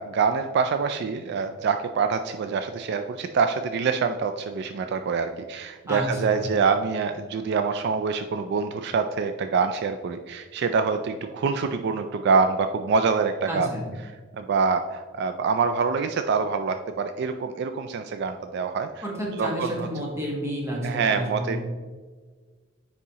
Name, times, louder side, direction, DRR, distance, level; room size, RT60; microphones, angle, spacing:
voice 1, 0.0-13.7 14.3-19.0 19.4-19.9 20.8-21.6, right 5 dB, 60° right, 8 dB, 0.3 m, -25 dB
voice 2, 5.9-6.5 13.5-13.9 19.0-21.6, equal, 15° right, -3 dB, 1.5 m, -30 dB
9.6 x 3.6 x 2.9 m, 1.4 s
head